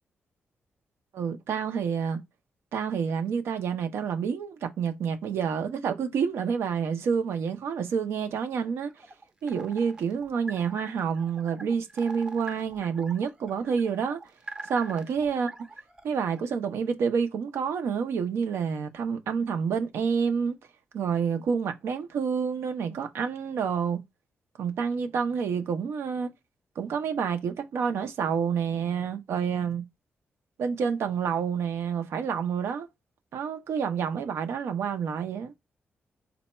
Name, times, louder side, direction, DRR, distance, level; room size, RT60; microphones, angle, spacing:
voice 1, 1.1-2.2 2.7-8.9 9.4-14.2 14.6-15.5 16.0-20.6 20.9-24.0 24.6-26.3 26.8-29.8 30.6-32.9 33.3-35.5, right 6 dB, 85° right, 0.6 m, -28 dB
sound 1, 8.8-16.4, right 2 dB, 20° right, 0.6 m, -44 dB
4.0 x 2.2 x 4.1 m
wide cardioid pair, 160°, 4 cm